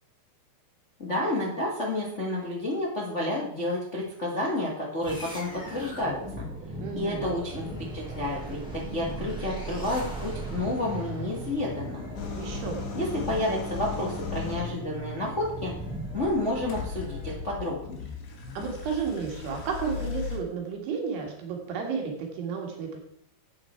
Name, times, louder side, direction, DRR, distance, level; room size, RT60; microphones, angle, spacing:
voice 1, 1.0-6.2 6.9-7.7 7.9-12.1 12.9-15.7 16.1-18.1, left 1 dB, 45° left, -3 dB, 0.9 m, -30 dB
sound 1, 5.0-17.7, right 1 dB, ahead, 2.8 m, -38 dB
voice 2, 6.8-7.4 12.4-12.9 18.5-23.0, right 6 dB, 90° right, 1 dB, 3.9 m, -32 dB
sound 2, 12.2-14.7 16.7-20.4, left 6 dB, 80° left, 3.6 m, -37 dB
12.0 x 8.2 x 4.5 m, 0.70 s
omnidirectional pair, 4.5 m